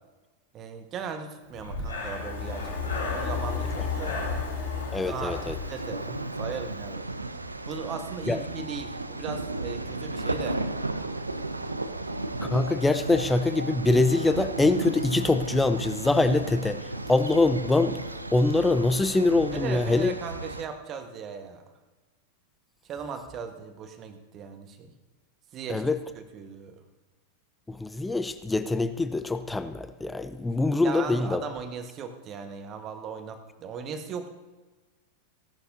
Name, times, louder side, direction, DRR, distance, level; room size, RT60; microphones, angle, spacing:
voice 1, 0.5-4.4 5.0-5.4 5.7-6.1 6.4-7.1 7.7-10.6 19.5-21.6 22.8-24.9 25.5-25.9 26.1-26.8 30.8-34.3, right 6 dB, 30° right, 7 dB, 1.4 m, -38 dB
Breathing, 1.5-6.5, left 4 dB, 80° left, 3.8 m, -32 dB
voice 2, 4.9-5.5 8.3-8.4 12.4-20.1 25.7-26.0 27.7-31.4, left 2 dB, 10° left, 11 dB, 0.5 m, -24 dB
sound 1, 5.3-20.6, right 2 dB, 80° right, 0.6 m, -34 dB
17.0 x 11.5 x 2.8 m, 1.2 s
figure-of-eight pair, 90°, 0 cm